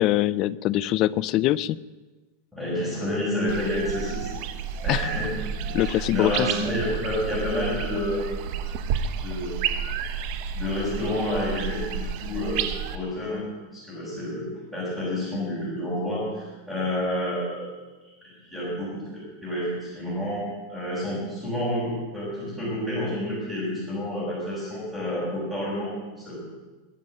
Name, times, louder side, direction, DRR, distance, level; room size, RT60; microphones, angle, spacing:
voice 1, 0.0-1.8 4.9-5.1 5.7-6.5, left 14 dB, 35° left, 19 dB, 0.4 m, -23 dB
voice 2, 2.5-4.3 4.8-5.4 5.8-8.5 9.2-9.5 10.6-13.5 13.7-17.7 18.2-26.4, left 1 dB, ahead, -12 dB, 5.6 m, -29 dB
sound 1, 3.5-13.0, right 7 dB, 45° right, 1.0 m, -31 dB
22.0 x 7.5 x 7.5 m, 1.2 s
supercardioid pair, 165°, 0 cm